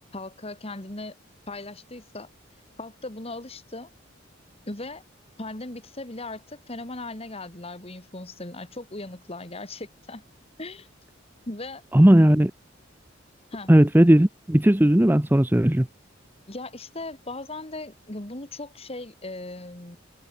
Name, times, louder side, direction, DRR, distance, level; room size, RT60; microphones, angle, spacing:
voice 1, 0.1-1.1 1.5-2.3 2.8-3.9 4.7-5.0 5.4-10.2 10.6-10.9 11.5-11.8 13.5-13.7 16.5-20.0, left 2 dB, 30° left, 2.5 m, -38 dB
voice 2, 11.9-12.5 13.7-15.9, right 1 dB, 10° right, 0.7 m, -17 dB
head